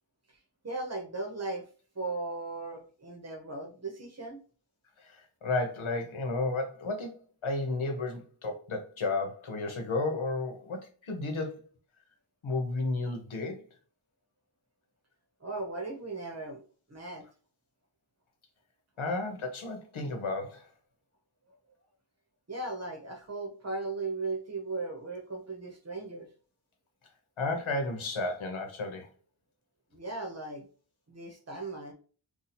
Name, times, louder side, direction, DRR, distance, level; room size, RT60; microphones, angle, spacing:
voice 1, 0.6-1.6 1.9-4.4 15.4-16.6 16.9-17.3 22.5-26.3 29.9-30.6 31.1-31.9, right 3 dB, 35° right, 0.9 m, -37 dB
voice 2, 5.0-11.6 12.4-13.6 19.0-20.6 27.4-29.1, left 2 dB, 85° left, 1.0 m, -33 dB
2.7 x 2.4 x 4.2 m
wide cardioid pair, 105°, 47 cm